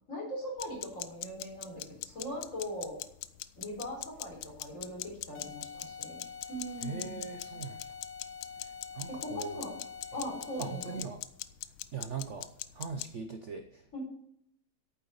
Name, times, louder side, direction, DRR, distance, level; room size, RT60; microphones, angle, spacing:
voice 1, 0.1-3.0 3.6-6.2 6.5-7.2 9.1-9.8 10.1-11.0 13.9-14.0, equal, 35° left, -2 dB, 4.5 m, -40 dB
sound 1, 0.6-13.1, left 15 dB, 75° left, 1.3 m, -42 dB
sound 2, 5.3-11.2, left 6 dB, 50° left, 0.8 m, -46 dB
voice 2, 6.8-7.8 8.9-9.6 10.6-11.2 11.9-14.0, right 6 dB, 70° right, 6 dB, 0.7 m, -40 dB
8.8 x 7.9 x 6.6 m, 0.75 s
omnidirectional pair, 2.3 m